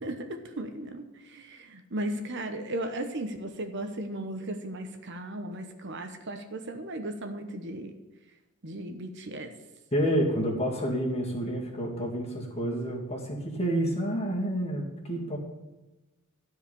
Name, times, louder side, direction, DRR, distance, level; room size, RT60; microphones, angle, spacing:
voice 1, 0.0-7.9 8.6-9.5, right 1 dB, 50° right, 6 dB, 1.0 m, -36 dB
voice 2, 9.9-15.4, equal, 30° left, -1 dB, 2.3 m, -29 dB
13.0 x 4.8 x 8.4 m, 1.1 s
head